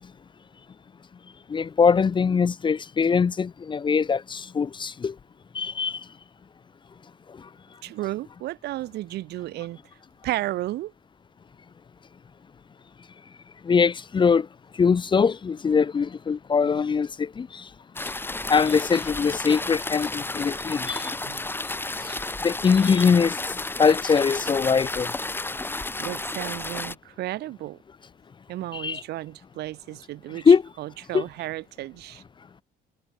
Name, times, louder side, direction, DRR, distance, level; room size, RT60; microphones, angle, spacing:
voice 1, 1.5-5.1 5.5-6.0 13.7-14.5 14.8-17.6 18.5-21.1 22.1-22.2 22.4-23.4 23.8-25.1 28.8-29.0 30.5-30.6 31.1-31.2, left 6 dB, 30° left, 0.8 m, -22 dB
voice 2, 7.8-9.8 10.2-10.9 21.2-21.4 26.0-27.8 28.5-32.2, right 16 dB, 75° right, 3.9 m, -33 dB
sound 1, 18.0-27.0, left 2 dB, 10° left, 2.7 m, -32 dB
cardioid pair, 110°, 17 cm